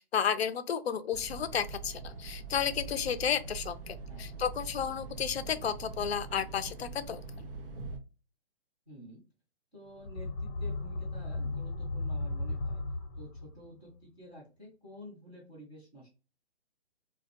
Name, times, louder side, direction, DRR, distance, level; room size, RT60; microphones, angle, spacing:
voice 1, 0.0-7.2, left 8 dB, 65° left, 0.5 m, -32 dB
sound 1, 1.1-8.0, right 4 dB, 55° right, 0.6 m, -43 dB
voice 2, 8.9-9.2 9.7-12.8 13.2-16.1, equal, 5° right, 0.4 m, -50 dB
sound 2, 9.9-13.7, left 2 dB, 35° left, 0.7 m, -35 dB
2.6 x 2.2 x 2.3 m
figure-of-eight pair, 140°, 33 cm